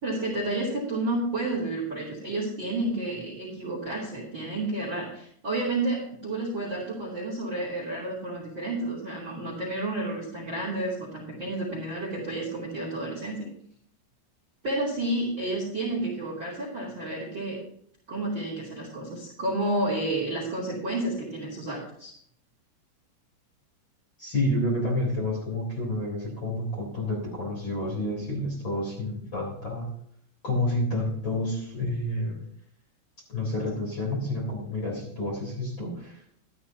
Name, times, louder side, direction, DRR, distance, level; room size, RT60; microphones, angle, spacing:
voice 1, 0.0-13.5 14.6-17.6 18.1-22.1, right 2 dB, 30° right, -3 dB, 2.7 m, -31 dB
voice 2, 24.2-29.9 30.4-32.4 33.3-36.2, left 1 dB, 25° left, -3 dB, 4.0 m, -29 dB
13.0 x 13.0 x 2.9 m, 0.65 s
omnidirectional pair, 6.0 m